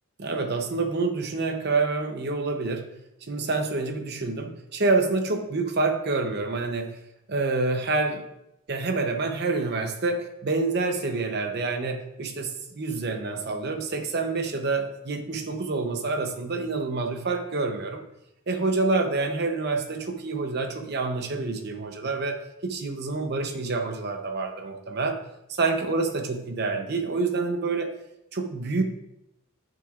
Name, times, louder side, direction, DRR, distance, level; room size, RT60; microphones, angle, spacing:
voice 1, 0.2-2.9 3.3-6.9 7.3-8.2 8.7-18.0 18.5-25.2 25.5-27.9 28.3-28.8, right 3 dB, 50° right, 5 dB, 0.8 m, -27 dB
10.0 x 6.8 x 2.5 m, 0.83 s
head